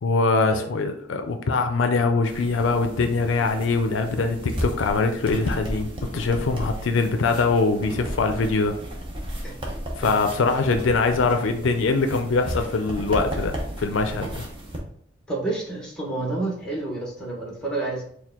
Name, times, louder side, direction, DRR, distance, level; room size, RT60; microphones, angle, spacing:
voice 1, 0.0-8.7 10.0-13.5 13.8-14.4, left 3 dB, 75° left, 6 dB, 0.4 m, -23 dB
sound 1, 2.3-14.8, equal, 25° right, 0.7 m, -34 dB
voice 2, 10.0-10.3 15.3-18.1, right 2 dB, 5° left, -3 dB, 1.1 m, -29 dB
4.4 x 2.3 x 3.5 m, 0.62 s
head